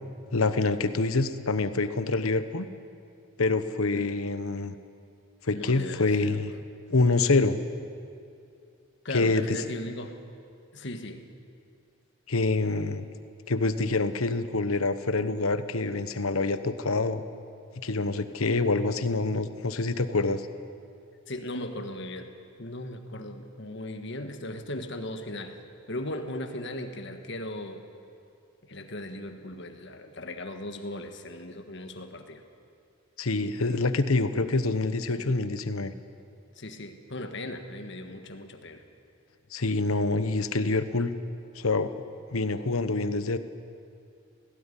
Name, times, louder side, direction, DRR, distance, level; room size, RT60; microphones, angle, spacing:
voice 1, 0.3-2.7 3.4-4.7 5.5-6.5 6.9-7.6 9.1-9.6 12.3-13.0 13.5-17.2 17.8-20.4 33.2-35.9 39.5-41.1 41.5-41.9 42.3-43.4, left 3 dB, 80° left, 11 dB, 1.1 m, -26 dB
voice 2, 5.5-6.6 9.0-10.1 10.7-11.2 21.3-22.3 22.6-25.6 25.9-27.8 28.7-32.4 35.1-35.4 36.5-38.8, left 1 dB, 55° left, 6 dB, 1.6 m, -38 dB
18.5 x 17.0 x 10.0 m, 2.5 s
head